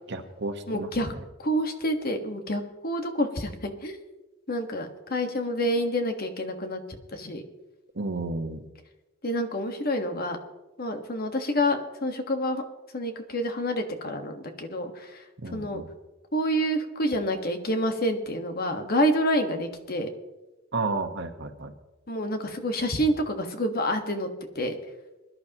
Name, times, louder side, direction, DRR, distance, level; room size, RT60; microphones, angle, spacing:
voice 1, 0.1-1.2 7.9-8.6 15.4-15.9 20.7-21.7, right 3 dB, 65° right, 6 dB, 1.3 m, -32 dB
voice 2, 0.7-1.1 1.4-4.0 4.5-6.8 7.1-7.4 9.2-10.4 10.8-12.6 12.9-15.2 15.5-15.8 16.3-20.1 22.1-24.3 24.5-24.7, equal, 50° left, 5 dB, 1.5 m, -28 dB
22.5 x 11.5 x 3.0 m, 1.1 s
head